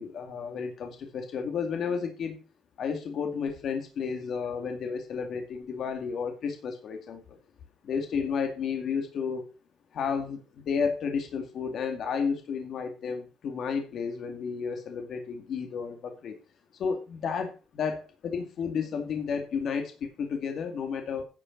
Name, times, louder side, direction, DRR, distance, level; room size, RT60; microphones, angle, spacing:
voice 1, 0.0-2.4 2.8-7.4 7.8-9.4 9.9-16.4 16.8-21.2, left 6 dB, 50° left, 5 dB, 2.1 m, -32 dB
11.0 x 6.7 x 6.0 m, 0.32 s
cardioid pair, 170°, 0 cm